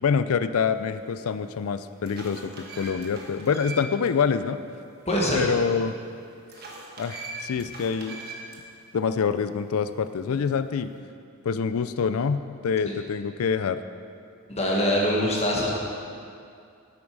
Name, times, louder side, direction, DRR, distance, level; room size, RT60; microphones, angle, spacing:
voice 1, 0.0-4.6 5.3-6.0 7.0-8.2 8.9-10.9 11.4-13.8, left 6 dB, 75° left, 12 dB, 0.4 m, -26 dB
sound 1, 1.1-1.2 1.7-4.1 4.5-4.6 6.5-8.6, right 2 dB, 50° right, 1.3 m, -40 dB
voice 2, 5.1-5.4 14.5-15.7, equal, 30° left, -3 dB, 1.5 m, -23 dB
9.3 x 8.4 x 4.7 m, 2.4 s
head